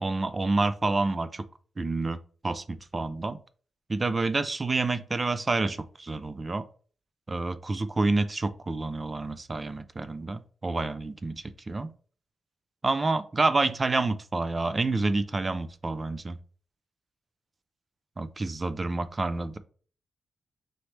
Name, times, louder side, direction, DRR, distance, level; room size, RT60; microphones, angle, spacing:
voice 1, 0.0-1.4 1.8-2.2 2.4-3.4 3.9-6.6 7.3-11.9 12.8-16.4 18.2-19.6, right 3 dB, 25° right, 13 dB, 0.4 m, -28 dB
4.0 x 3.2 x 3.1 m, 0.42 s
cardioid pair, 115°, 0 cm